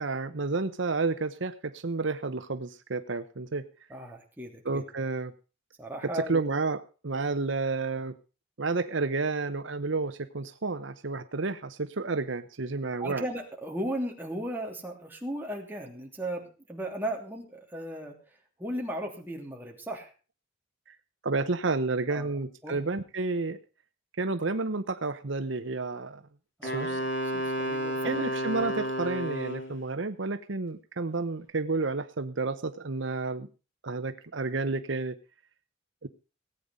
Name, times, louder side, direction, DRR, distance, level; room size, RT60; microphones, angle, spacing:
voice 1, 0.0-3.6 4.6-5.3 6.1-8.1 8.6-13.2 21.2-23.6 24.2-26.2 26.6-27.0 28.0-33.5 33.8-35.2 36.0-36.1, right 3 dB, 65° right, 10 dB, 0.9 m, -31 dB
voice 2, 3.9-5.1 5.8-6.4 13.0-18.2 18.6-20.1 22.1-22.3 22.6-22.8 26.6-27.1 27.3-28.1, right 1 dB, 10° right, 0 dB, 3.0 m, -36 dB
Wind instrument woodwind instrument, 26.6-29.8, equal, 65° left, 3.7 m, -31 dB
17.5 x 9.0 x 5.2 m, 0.34 s
head